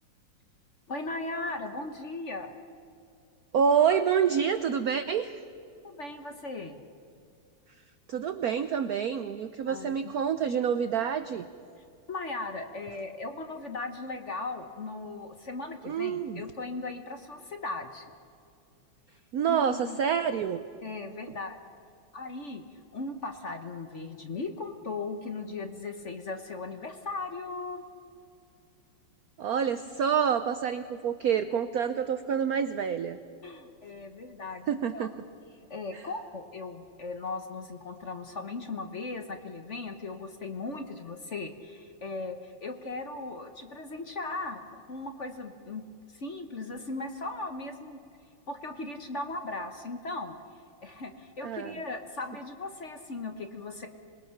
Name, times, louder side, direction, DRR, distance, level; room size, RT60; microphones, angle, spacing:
voice 1, 0.9-2.5 5.8-6.8 9.7-10.1 12.1-18.1 19.5-20.0 20.8-21.6 22.1-22.6 22.9-27.8 33.4-35.2 35.7-48.0 48.5-50.4 50.8-53.9, left 3 dB, 40° left, 6 dB, 1.2 m, -38 dB
voice 2, 3.5-5.4 8.1-11.5 15.8-16.4 19.3-20.6 29.4-33.2 34.7-35.1 35.9-36.1 51.4-51.8, right 7 dB, 70° right, 11 dB, 0.8 m, -27 dB
26.5 x 21.0 x 5.8 m, 2.5 s
omnidirectional pair, 2.3 m